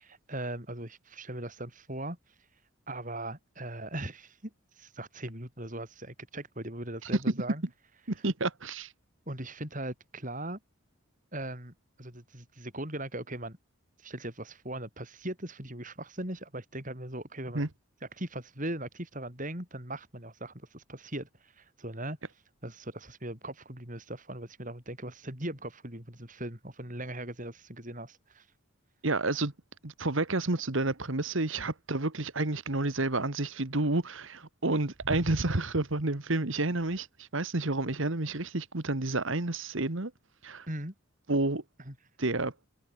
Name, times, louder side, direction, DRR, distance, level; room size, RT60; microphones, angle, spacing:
voice 1, 0.0-2.2 2.9-7.6 9.3-10.6 11.3-13.6 14.0-17.6 18.2-22.2 22.6-28.5 40.7-40.9 41.9-42.0, right 1 dB, 35° right, 7.7 m, -39 dB
voice 2, 8.1-8.9 17.5-17.7 29.0-29.5 29.8-40.1 40.4-40.7 41.3-41.6 42.2-42.5, right 2 dB, 65° right, 1.8 m, -30 dB
head